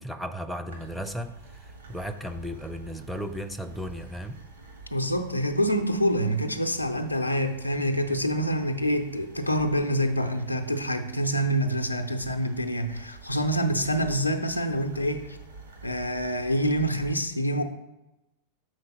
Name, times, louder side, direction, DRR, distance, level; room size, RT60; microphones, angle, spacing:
voice 1, 0.0-4.4, equal, ahead, 8 dB, 0.4 m, -35 dB
sound 1, 0.7-17.1, right 4 dB, 70° right, 1.7 m, -48 dB
voice 2, 4.9-15.4 15.8-17.6, equal, 90° left, 4 dB, 0.5 m, -26 dB
6.4 x 3.9 x 5.8 m, 0.97 s
figure-of-eight pair, 90°, 0 cm